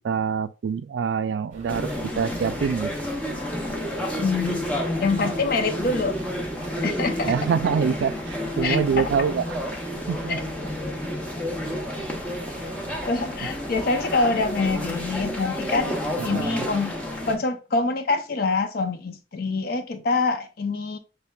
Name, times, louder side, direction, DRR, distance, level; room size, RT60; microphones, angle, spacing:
voice 1, 0.0-2.9 7.2-9.6 10.1-10.4 16.2-16.7, right 6 dB, 75° right, 0.3 m, -25 dB
sound 1, 1.5-14.5, right 2 dB, 45° right, 0.8 m, -44 dB
sound 2, 1.7-17.3, left 1 dB, 10° left, 0.7 m, -30 dB
voice 2, 4.2-4.7 5.0-6.1 6.8-7.3 8.6-8.8 10.3-10.4 13.0-17.0 17.3-21.0, left 3 dB, 55° left, 0.6 m, -25 dB
5.8 x 3.3 x 2.3 m
head